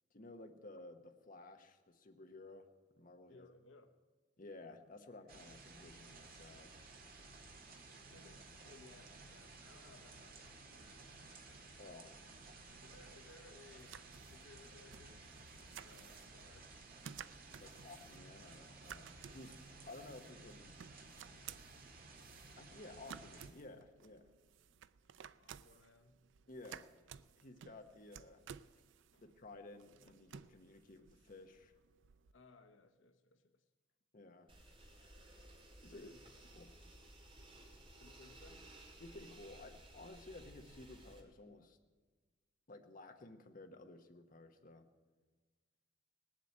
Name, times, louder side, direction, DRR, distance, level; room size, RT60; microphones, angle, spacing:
voice 1, 0.1-2.7 3.0-3.5 4.4-6.8 11.8-12.2 17.6-20.8 22.6-24.3 26.5-26.9 27.4-28.4 29.2-31.7 34.1-34.5 35.8-36.1 36.5-36.8 39.0-41.8 42.7-44.9, left 2 dB, 45° left, 5 dB, 1.0 m, -55 dB
voice 2, 3.3-4.0 7.9-11.7 12.8-15.2 15.7-16.8 25.3-26.3 29.1-29.2 32.3-33.6 35.9-36.2 38.0-38.7, left 3 dB, 80° left, 8 dB, 0.8 m, -63 dB
sound 1, 5.3-23.5, right 3 dB, 50° right, 1.7 m, -56 dB
sound 2, 12.7-32.3, right 8 dB, 75° right, 0.4 m, -57 dB
sound 3, 34.5-41.2, right 1 dB, 30° right, 1.9 m, -58 dB
18.5 x 7.5 x 8.6 m, 1.4 s
head